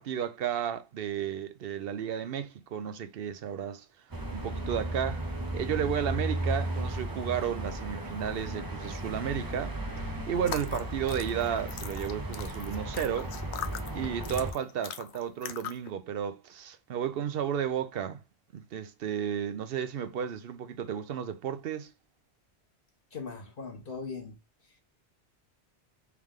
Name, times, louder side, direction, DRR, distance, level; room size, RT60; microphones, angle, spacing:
voice 1, 0.0-3.9 4.3-5.3 5.5-9.8 10.3-13.3 13.9-18.2 18.5-21.9, right 8 dB, 65° right, 0.8 m, -33 dB
sound 1, 4.1-14.5, right 1 dB, 25° right, 0.6 m, -35 dB
sound 2, 10.4-15.9, left 9 dB, 90° left, 0.9 m, -41 dB
voice 2, 23.1-24.4, left 4 dB, 55° left, 1.1 m, -39 dB
3.6 x 3.2 x 3.6 m
omnidirectional pair, 1.1 m